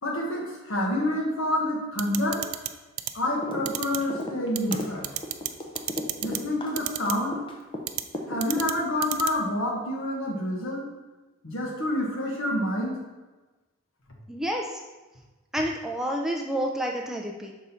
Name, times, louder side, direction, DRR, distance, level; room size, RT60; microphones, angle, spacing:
voice 1, 0.0-2.4 3.1-5.1 6.2-7.4 8.3-10.9 11.4-13.0, left 1 dB, 70° left, -1 dB, 1.3 m, -28 dB
sound 1, 2.0-2.7 3.0-3.1 3.7-4.0 4.6-4.8 5.0-5.5 5.8-6.4 6.8-7.1 7.9-8.0 8.4-8.7 9.0-9.3, right 15 dB, 85° right, 0.4 m, -29 dB
sound 2, 3.4-3.7 4.0-7.8 8.1-9.0, left 1 dB, 25° left, 0.7 m, -34 dB
voice 2, 14.3-14.6 15.5-17.5, equal, ahead, 0 dB, 0.4 m, -29 dB
6.2 x 3.7 x 4.2 m, 1.2 s
head